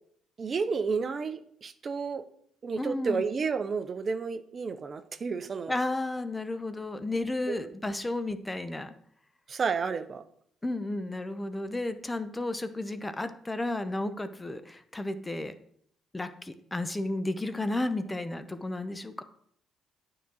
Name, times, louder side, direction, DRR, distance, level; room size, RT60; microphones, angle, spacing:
voice 1, 0.4-2.2 2.6-5.7 7.5-7.6 9.5-10.2, right 5 dB, 45° right, 10 dB, 0.6 m, -31 dB
voice 2, 2.8-3.3 5.7-8.9 10.6-15.5 16.1-19.2, left 2 dB, 15° left, 11 dB, 0.8 m, -33 dB
9.3 x 3.9 x 6.3 m, 0.66 s
hypercardioid pair, 55°, 0 cm